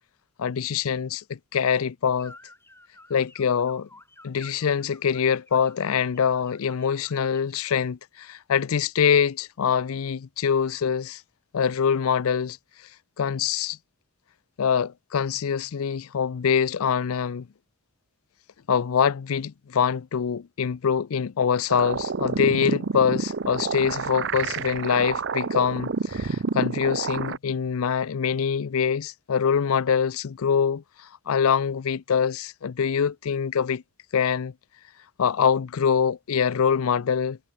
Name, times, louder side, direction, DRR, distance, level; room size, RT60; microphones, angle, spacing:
voice 1, 0.4-2.3 3.1-3.9 4.2-11.2 11.5-12.6 13.2-13.8 14.6-17.5 18.7-30.8 31.3-33.8 34.1-34.5 35.2-37.4, left 7 dB, 75° left, 0.5 m, -24 dB
sound 1, 2.2-7.5, left 2 dB, 10° left, 6.9 m, -51 dB
sound 2, 21.7-27.4, right 4 dB, 55° right, 0.6 m, -29 dB
head